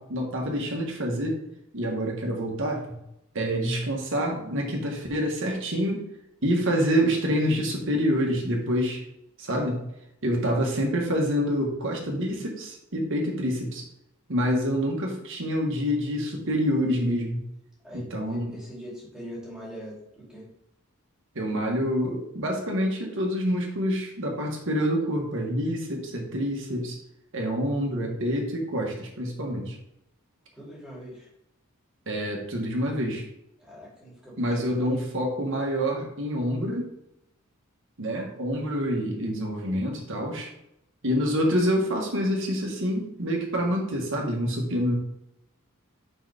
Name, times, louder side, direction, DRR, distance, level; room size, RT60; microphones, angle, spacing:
voice 1, 0.0-1.4 1.7-3.0 3.3-6.0 6.4-9.0 9.4-9.8 10.2-13.8 14.3-17.4 17.9-18.5 21.3-27.0 27.3-29.8 32.1-33.2 34.4-36.8 38.0-40.5 41.0-44.9, equal, 60° right, 1 dB, 1.5 m, -27 dB
voice 2, 17.8-20.5 30.5-31.3 33.6-34.9, equal, 5° right, -6 dB, 2.6 m, -42 dB
5.1 x 4.6 x 4.9 m, 0.82 s
head